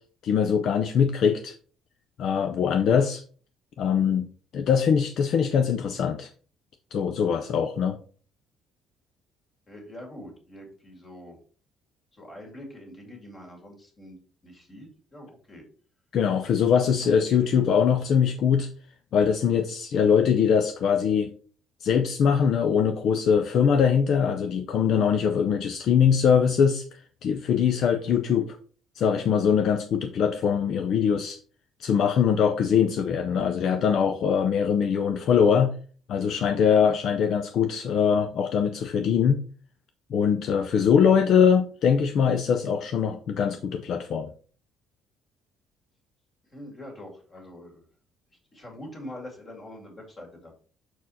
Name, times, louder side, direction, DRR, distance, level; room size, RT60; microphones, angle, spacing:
voice 1, 0.2-1.5 2.2-3.2 3.8-4.3 4.5-6.3 6.9-8.0 16.1-18.7 19.1-21.3 21.8-28.6 29.0-31.4 31.8-35.7 36.1-39.4 40.1-44.3, left 7 dB, 50° left, 7 dB, 0.5 m, -22 dB
voice 2, 9.7-11.4 12.1-14.2 14.4-15.6 17.0-17.5 46.5-47.9 48.5-50.6, left 1 dB, 25° left, 1 dB, 2.1 m, -44 dB
6.2 x 4.5 x 4.1 m, 0.42 s
cardioid pair, 160°, 0 cm